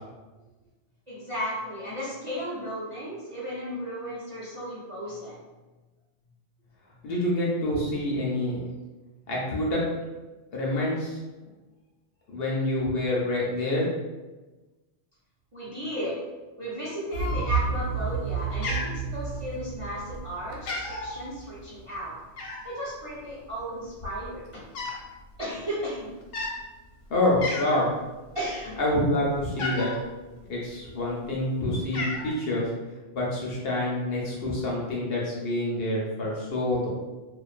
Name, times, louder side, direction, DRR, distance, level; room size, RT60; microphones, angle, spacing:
voice 1, 1.1-5.4 15.5-16.2 16.6-22.1 22.6-24.6 25.4-26.1 28.3-28.8, equal, 40° right, -9 dB, 0.4 m, -34 dB
voice 2, 7.0-8.6 9.3-9.8 10.5-11.2 12.3-13.9 27.1-27.9 28.8-29.9 30.5-32.7 33.1-36.9, left 1 dB, 60° left, -4 dB, 0.7 m, -27 dB
sound 1, 17.1-22.0, right 6 dB, 60° right, 0.9 m, -31 dB
Cat, 17.2-17.8 18.1-18.4 18.6-19.6 20.1-20.3 20.5-21.2 22.4-22.8 23.6-23.7 23.9-25.1 25.3-25.6 26.2-26.6 27.0-27.1 27.4-27.9 28.3-30.0 30.8-31.4 31.6-32.3, left 2 dB, 90° left, 0.9 m, -34 dB
2.4 x 2.2 x 2.4 m, 1.2 s
omnidirectional pair, 1.2 m